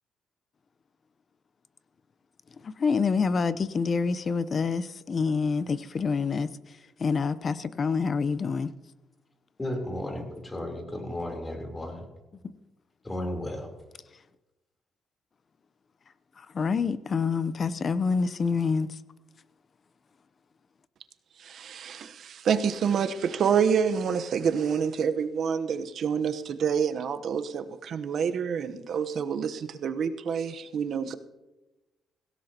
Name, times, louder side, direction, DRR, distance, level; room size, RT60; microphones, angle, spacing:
voice 1, 2.6-8.7 16.4-19.0, left 5 dB, 45° left, 0.7 m, -27 dB
voice 2, 9.6-12.1 13.0-13.7, left 1 dB, 20° left, 3.5 m, -34 dB
voice 3, 21.4-31.2, right 7 dB, 65° right, 1.0 m, -27 dB
17.5 x 16.5 x 2.9 m
cardioid pair, 85°, 0 cm